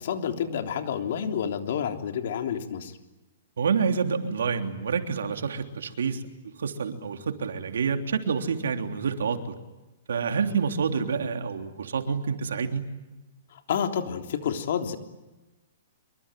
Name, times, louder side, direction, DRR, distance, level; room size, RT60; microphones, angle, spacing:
voice 1, 0.0-3.0 13.5-15.0, left 8 dB, 60° left, 5 dB, 3.5 m, -29 dB
voice 2, 3.6-6.3 6.6-9.5 10.1-12.9, right 6 dB, 90° right, 6 dB, 3.3 m, -28 dB
26.0 x 24.5 x 9.2 m, 1.1 s
hypercardioid pair, 160°, 0 cm